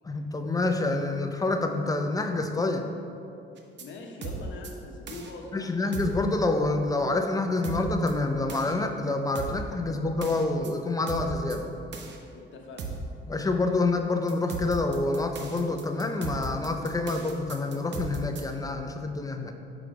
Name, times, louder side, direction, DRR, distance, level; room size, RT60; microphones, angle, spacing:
voice 1, 0.0-2.9 5.5-11.6 13.3-19.5, left 2 dB, 20° left, 5 dB, 0.5 m, -27 dB
sound 1, 3.6-3.8 4.2-4.7 5.1-5.3 5.9-6.2 7.6-8.1 8.5-8.7 9.4-9.7 10.2-10.7 11.1-11.6 11.9-12.2 12.8-13.1 14.3-18.4, right 3 dB, 65° right, 0.8 m, -36 dB
voice 2, 3.8-5.7 12.3-13.0, left 3 dB, 70° left, 2 dB, 0.9 m, -42 dB
4.9 x 4.8 x 5.0 m, 2.6 s
cardioid pair, 90°, 20 cm